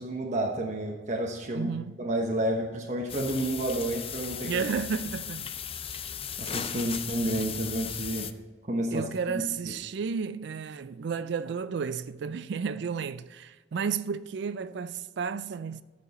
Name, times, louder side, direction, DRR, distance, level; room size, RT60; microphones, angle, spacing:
voice 1, 0.0-1.7 2.0-4.5 6.4-8.3 8.7-9.0, right 1 dB, 40° right, 1.1 m, -30 dB
voice 2, 1.5-2.0 4.4-5.5 8.9-15.8, right 6 dB, 65° right, 0.4 m, -32 dB
sound 1, 3.1-8.3, left 8 dB, 30° left, 0.5 m, -36 dB
13.5 x 6.3 x 4.1 m
head